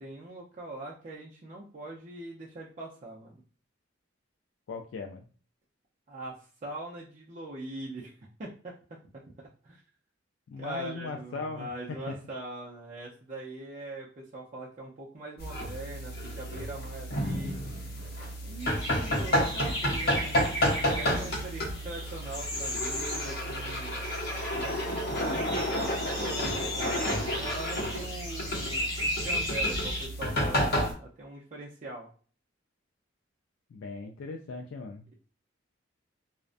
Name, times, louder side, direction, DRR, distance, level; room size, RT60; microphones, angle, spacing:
voice 1, 0.0-3.4 6.1-8.1 8.4-8.7 9.6-9.8 10.6-17.6 18.4-20.5 20.9-23.9 24.5-32.1, right 2 dB, 40° right, -4 dB, 0.5 m, -42 dB
voice 2, 4.7-5.3 10.5-11.7 12.1-12.2 33.7-35.1, left 4 dB, 85° left, 3 dB, 0.3 m, -38 dB
sound 1, 15.4-30.9, equal, 55° left, 0.7 m, -31 dB
sound 2, 18.6-30.1, equal, 20° left, 1.2 m, -36 dB
2.4 x 2.1 x 2.4 m, 0.40 s
head